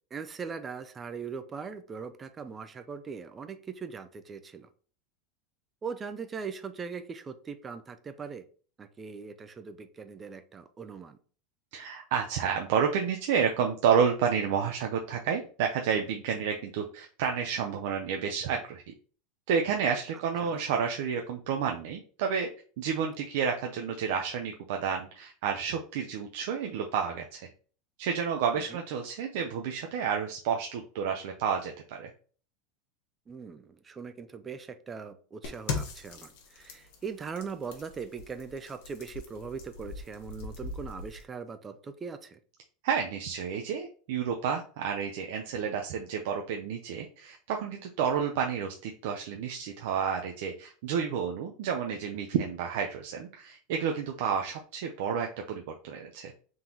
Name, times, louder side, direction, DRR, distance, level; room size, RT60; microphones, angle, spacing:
voice 1, 0.1-4.7 5.8-8.5 8.8-11.2 20.4-20.6 28.5-28.8 33.3-42.4, right 5 dB, 15° right, 11 dB, 0.3 m, -40 dB
voice 2, 11.7-18.9 19.5-22.5 22.8-27.5 28.0-32.1 42.8-56.3, right 7 dB, 60° right, 3 dB, 0.5 m, -30 dB
sound 1, 35.4-41.2, left 5 dB, 60° left, 1.2 m, -40 dB
3.7 x 2.9 x 3.8 m, 0.41 s
supercardioid pair, 165°, 0 cm